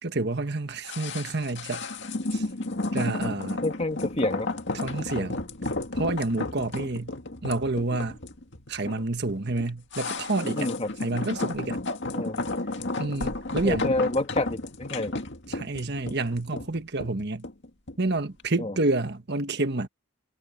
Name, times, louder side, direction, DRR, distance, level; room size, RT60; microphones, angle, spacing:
voice 1, 0.0-1.9 2.3-2.5 2.9-3.6 4.7-5.4 5.9-7.1 7.4-8.2 8.7-10.7 11.0-11.8 13.0-13.9 15.5-17.5 18.0-19.9, right 2 dB, 50° right, 1.4 m, -29 dB
sound 1, 0.8-18.1 18.4-18.5, left 2 dB, 55° left, 2.3 m, -33 dB
voice 2, 3.6-4.5 5.1-5.3 10.6-10.9 12.1-12.4 13.6-15.2 18.6-18.7, left 2 dB, 30° left, 1.6 m, -28 dB
head